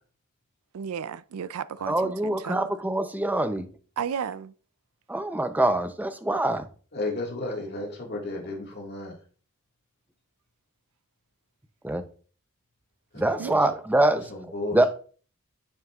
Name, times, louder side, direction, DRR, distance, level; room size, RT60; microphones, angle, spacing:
voice 1, 0.7-2.7 4.0-4.5 13.4-13.5, right 7 dB, 75° right, 0.4 m, -33 dB
voice 2, 1.9-3.7 5.1-6.7 11.8-12.0 13.2-14.3 14.7-14.9, right 1 dB, 10° right, 0.5 m, -24 dB
voice 3, 6.9-9.2 13.1-13.6 14.3-14.8, left 2 dB, 50° left, 1.8 m, -33 dB
9.0 x 6.4 x 2.4 m
head